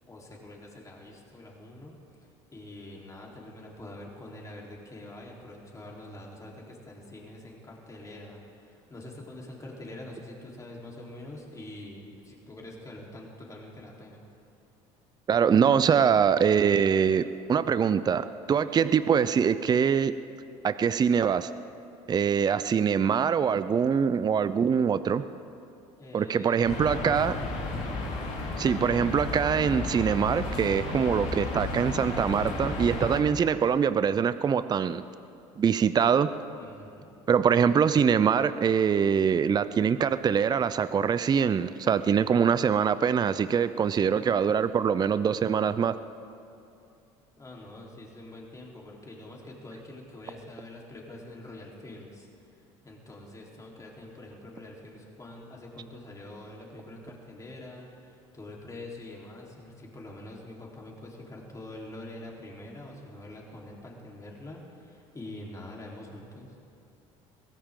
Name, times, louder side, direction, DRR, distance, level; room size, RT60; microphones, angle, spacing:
voice 1, 0.0-1.9 2.5-14.3 26.0-27.8 36.6-37.1 47.4-66.6, left 1 dB, 25° left, -2 dB, 3.7 m, -45 dB
voice 2, 15.3-17.2 17.5-20.1 20.6-21.5 22.1-25.2 26.1-27.3 28.6-35.0 35.6-36.3 37.3-46.0, right 7 dB, 30° right, 13 dB, 0.5 m, -24 dB
sound 1, 26.6-33.2, left 3 dB, 60° left, 3.4 m, -33 dB
23.0 x 16.0 x 3.8 m, 2.6 s
supercardioid pair, 85°, 14 cm